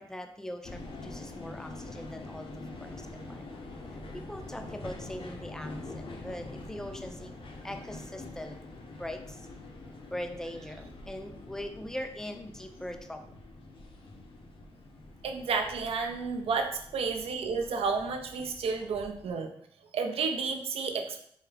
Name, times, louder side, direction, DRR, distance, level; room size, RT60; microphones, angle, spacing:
voice 1, 0.0-3.5 4.1-7.3 7.6-8.6 9.0-9.4 10.1-13.3, left 1 dB, 5° left, 6 dB, 0.4 m, -41 dB
sound 1, 0.6-19.3, left 2 dB, 60° left, 0.6 m, -45 dB
voice 2, 15.2-19.5 19.9-21.2, right 5 dB, 70° right, 4 dB, 0.5 m, -31 dB
3.5 x 2.7 x 3.3 m, 0.67 s
cardioid pair, 80°, 10 cm